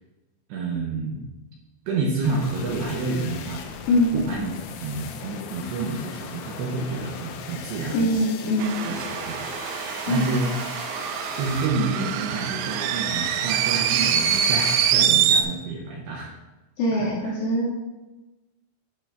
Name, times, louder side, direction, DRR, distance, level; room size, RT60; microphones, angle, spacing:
voice 1, 0.5-1.2 1.9-3.6 4.1-4.5 4.8-8.5 8.8-9.8 10.1-10.5 11.4-16.3 16.9-17.3, right 3 dB, 75° right, -2 dB, 2.7 m, -29 dB
sound 1, 2.2-11.7, left 6 dB, 85° left, 3.5 m, -39 dB
voice 2, 3.9-4.2 7.9-8.8 10.1-10.3 16.8-17.7, left 1 dB, 65° left, -5 dB, 2.6 m, -22 dB
sound 2, 8.6-15.4, right 8 dB, 90° right, 3.3 m, -24 dB
10.5 x 4.0 x 5.9 m, 1.1 s
omnidirectional pair, 5.9 m